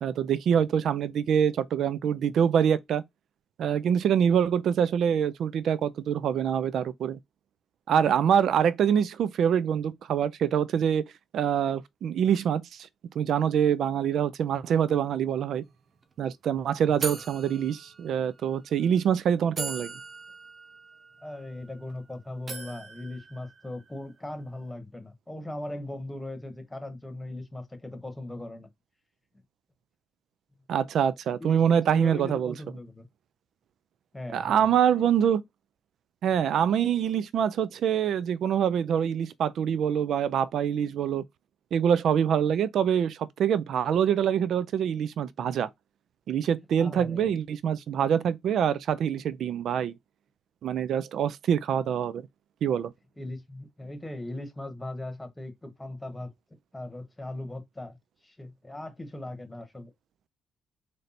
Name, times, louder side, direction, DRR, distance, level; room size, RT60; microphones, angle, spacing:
voice 1, 0.0-3.0 3.6-7.2 7.9-11.0 11.3-12.9 13.2-15.6 16.2-19.9 30.7-32.5 34.3-35.4 36.2-41.2 41.7-45.7 46.3-49.9 50.6-52.2 52.6-52.9, right 8 dB, 70° right, 0.3 m, -25 dB
sound 1, 15.7-15.8 16.0-16.3 17.0-18.4 19.1-19.2 19.6-22.0 22.5-24.1, right 4 dB, 40° right, 0.7 m, -39 dB
voice 2, 21.2-28.7 31.4-33.1 34.1-34.7 35.0-35.1 46.8-47.3 53.2-56.3 56.7-58.0 58.2-59.9, left 1 dB, 10° left, 1.1 m, -39 dB
3.2 x 2.6 x 4.1 m
cardioid pair, 90°, 0 cm